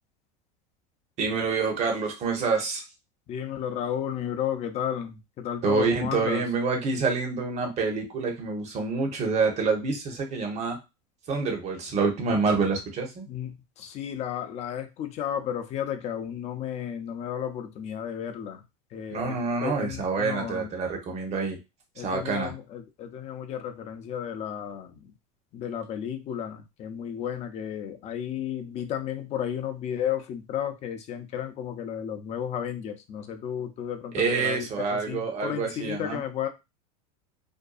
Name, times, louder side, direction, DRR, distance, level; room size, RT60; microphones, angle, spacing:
voice 1, 1.2-2.8 5.6-10.8 11.3-13.2 19.1-21.6 22.0-22.5 34.1-36.2, right 4 dB, 35° right, 2 dB, 0.9 m, -27 dB
voice 2, 3.3-6.4 13.3-18.6 18.9-19.4 19.6-20.7 22.0-25.1 25.5-36.5, left 9 dB, 35° left, 7 dB, 0.5 m, -33 dB
2.6 x 2.2 x 2.3 m, 0.24 s
supercardioid pair, 115°, 20 cm